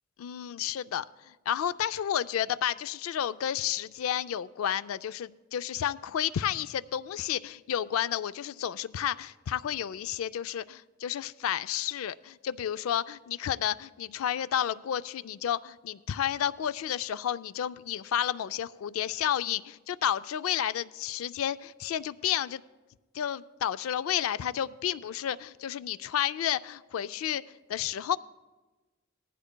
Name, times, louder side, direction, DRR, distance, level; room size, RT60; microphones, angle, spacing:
voice 1, 0.2-1.1 1.5-22.6 23.1-27.4 27.7-28.2, left 10 dB, 85° left, 16 dB, 0.3 m, -31 dB
19.0 x 15.0 x 2.2 m, 1.2 s
head